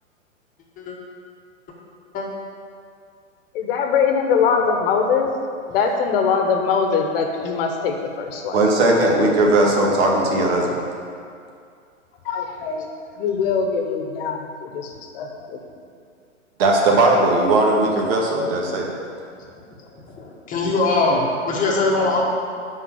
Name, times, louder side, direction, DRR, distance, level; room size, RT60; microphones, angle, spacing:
voice 1, 3.5-5.3 5.7-8.6 12.2-12.9 13.2-15.6, left 6 dB, 45° left, 4 dB, 1.3 m, -22 dB
voice 2, 8.5-10.7 16.6-18.9, right 2 dB, 45° right, -1 dB, 2.0 m, -18 dB
voice 3, 20.1-22.2, left 2 dB, 20° left, -2 dB, 1.3 m, -21 dB
10.5 x 4.4 x 7.2 m, 2.3 s
hypercardioid pair, 130°, 39 cm